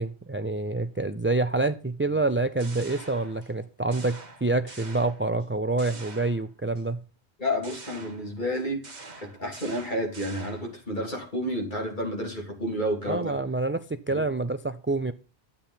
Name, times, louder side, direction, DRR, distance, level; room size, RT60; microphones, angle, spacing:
voice 1, 0.0-7.0 13.1-15.1, right 2 dB, 20° right, 0.3 m, -27 dB
sound 1, 2.3-3.6 3.9-5.5 5.8-6.8 7.6-10.8, right 3 dB, 40° right, 1.7 m, -46 dB
voice 2, 7.4-8.8 9.2-13.4 14.1-14.2, equal, 45° left, 3.4 m, -30 dB
12.0 x 8.6 x 5.7 m
omnidirectional pair, 1.1 m